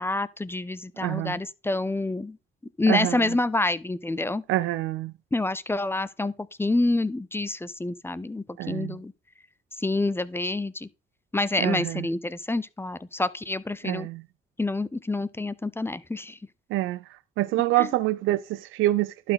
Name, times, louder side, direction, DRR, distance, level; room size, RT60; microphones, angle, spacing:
voice 1, 0.0-2.4 2.8-4.4 5.3-9.1 9.8-10.9 11.3-14.1 14.6-16.4 17.8-17.9, left 2 dB, 10° left, 0.5 m, -27 dB
voice 2, 1.0-1.4 2.9-3.2 4.5-5.1 8.6-9.0 11.6-12.1 13.8-14.2 16.7-17.0 17.4-19.3, right 16 dB, 85° right, 0.4 m, -26 dB
11.5 x 4.3 x 3.9 m
cardioid pair, 90°, 20 cm